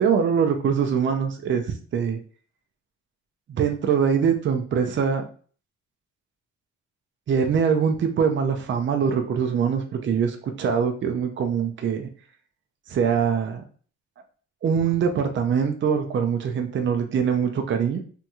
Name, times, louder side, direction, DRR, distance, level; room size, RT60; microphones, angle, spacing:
voice 1, 0.0-1.6 1.9-2.2 3.5-5.2 7.3-12.1 12.9-13.6 14.6-18.0, right 7 dB, 40° right, 5 dB, 0.5 m, -23 dB
2.8 x 2.7 x 2.3 m, 0.42 s
cardioid pair, 90°, 30 cm